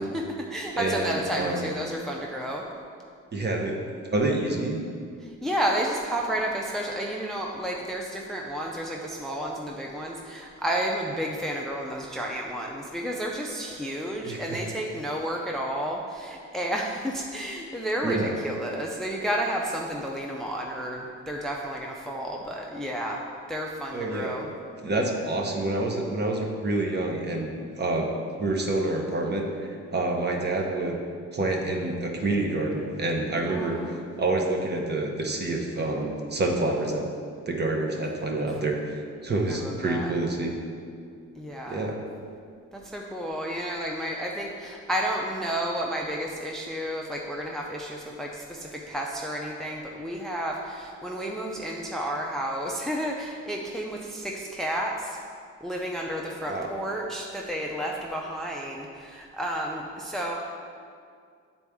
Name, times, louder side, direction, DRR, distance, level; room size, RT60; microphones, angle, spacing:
voice 1, 0.0-2.6 5.2-23.2 23.5-24.5 33.5-34.0 39.5-40.1 41.4-41.9 42.7-55.2 55.6-60.3, equal, ahead, -1 dB, 0.5 m, -31 dB
voice 2, 0.8-1.7 3.3-3.8 4.1-4.8 14.2-14.6 18.0-18.3 23.9-24.4 24.8-28.1 28.4-31.0 31.3-37.1 37.5-40.5 41.7-42.0 56.5-56.7, right 2 dB, 35° right, 1 dB, 1.0 m, -27 dB
8.3 x 4.1 x 3.5 m, 2.2 s
cardioid pair, 90°, 30 cm